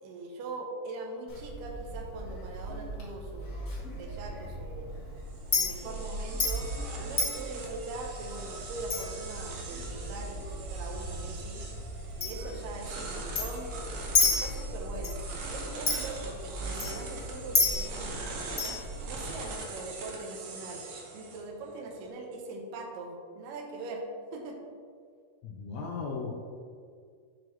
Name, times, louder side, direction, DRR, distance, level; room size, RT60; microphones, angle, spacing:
voice 1, 0.0-4.9 5.6-6.7 7.0-11.7 12.2-13.7 14.2-15.2 15.5-18.8 19.1-20.9 21.1-24.1 24.3-24.6, right 2 dB, 90° right, 1 dB, 2.4 m, -41 dB
Chink clink, 1.3-19.5, left 2 dB, 40° left, 1.3 m, -34 dB
sound 1, 4.9-22.1, right 3 dB, 70° right, 1.4 m, -43 dB
voice 2, 25.4-26.4, left 4 dB, 75° left, -1 dB, 1.6 m, -36 dB
7.2 x 6.1 x 3.1 m, 2.1 s
omnidirectional pair, 3.8 m